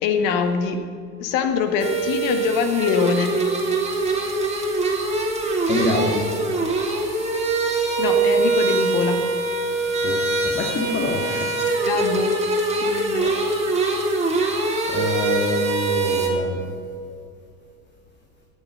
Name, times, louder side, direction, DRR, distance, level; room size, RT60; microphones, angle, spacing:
voice 1, 0.0-0.8 1.2-3.4 8.0-9.2 11.9-12.3 12.8-13.3, left 6 dB, 45° left, 7 dB, 1.8 m, -23 dB
sound 1, 1.8-16.3, right 3 dB, 15° right, 2.8 m, -23 dB
voice 2, 5.7-6.3 10.0-11.5 14.9-16.6, left 2 dB, 25° left, 0 dB, 2.2 m, -25 dB
17.5 x 10.5 x 5.7 m, 2.3 s
figure-of-eight pair, 85°, 47 cm